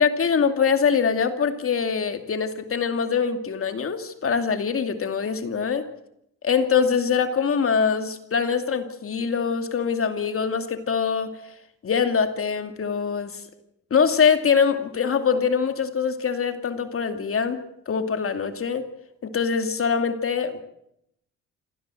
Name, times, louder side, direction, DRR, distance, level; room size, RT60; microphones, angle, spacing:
voice 1, 0.0-5.9 6.4-11.3 11.8-13.4 13.9-17.6 17.9-18.8 19.2-20.6, left 6 dB, 45° left, 8 dB, 2.5 m, -23 dB
27.0 x 16.0 x 7.7 m, 0.79 s
cardioid pair, 90°, 30 cm